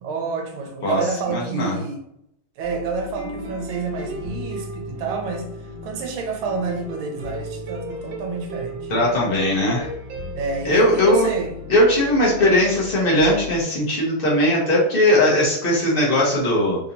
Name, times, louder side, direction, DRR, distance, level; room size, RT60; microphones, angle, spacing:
voice 1, 0.0-2.0 2.6-5.5 5.8-8.9 10.3-11.6, right 4 dB, 85° right, 3 dB, 1.5 m, -29 dB
voice 2, 1.3-1.8 8.9-9.9 10.6-11.3 11.7-16.8, left 1 dB, 50° left, -4 dB, 0.6 m, -19 dB
sound 1, 2.6-13.6, equal, 70° right, 1.4 m, -34 dB
3.7 x 2.8 x 2.6 m, 0.75 s
omnidirectional pair, 2.2 m